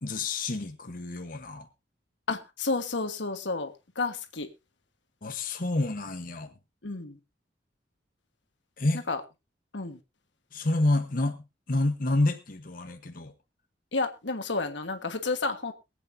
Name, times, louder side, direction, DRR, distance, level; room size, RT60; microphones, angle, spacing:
voice 1, 0.0-1.7 5.2-6.5 8.8-9.0 10.5-11.4 11.7-13.3, left 2 dB, 50° left, 1.1 m, -28 dB
voice 2, 2.3-4.5 6.8-7.2 9.1-9.2 9.7-10.0 13.9-15.7, left 3 dB, 90° left, 1.5 m, -31 dB
23.0 x 8.4 x 2.7 m
head